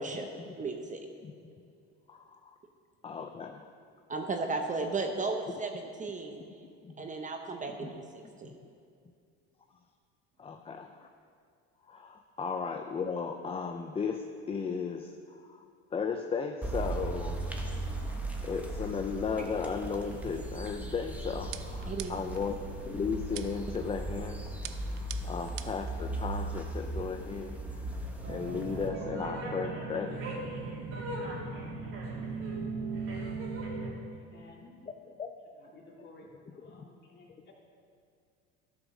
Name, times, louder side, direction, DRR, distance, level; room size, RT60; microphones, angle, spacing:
voice 1, 0.6-1.1 4.1-6.4 7.0-8.6 21.9-22.2, right 3 dB, 25° right, 4 dB, 0.7 m, -35 dB
voice 2, 2.1-2.5 3.0-3.7 6.5-6.6 6.8-7.1 7.8-7.9 8.2-8.6 10.4-11.1 11.8-17.5 18.0-30.2 34.8-35.3 36.6-36.7, left 5 dB, 20° left, 5 dB, 0.4 m, -36 dB
sound 1, 16.6-28.9, right 2 dB, 5° right, 1.2 m, -37 dB
sound 2, 21.5-22.4 23.3-23.8 24.6-25.9, right 14 dB, 75° right, 0.6 m, -44 dB
sound 3, 28.2-33.9, right 3 dB, 45° right, 2.6 m, -37 dB
voice 3, 34.1-34.7 35.6-37.5, left 2 dB, 35° left, -2 dB, 2.3 m, -55 dB
12.5 x 5.1 x 6.2 m, 2.3 s
supercardioid pair, 105°, 30 cm